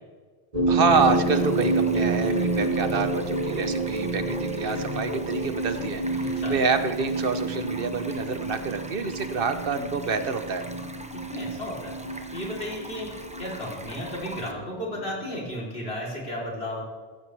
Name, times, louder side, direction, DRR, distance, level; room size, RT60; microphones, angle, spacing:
sound 1, 0.5-15.4, right 2 dB, 35° right, 1.5 m, -29 dB
voice 1, 0.7-10.6, right 5 dB, 65° right, 9 dB, 1.1 m, -27 dB
Stream, 0.9-14.5, right 1 dB, 5° right, 0.8 m, -43 dB
voice 2, 11.3-13.1 13.4-16.8, left 1 dB, 80° left, -3 dB, 3.9 m, -34 dB
15.0 x 14.5 x 3.4 m, 1.5 s
omnidirectional pair, 1.0 m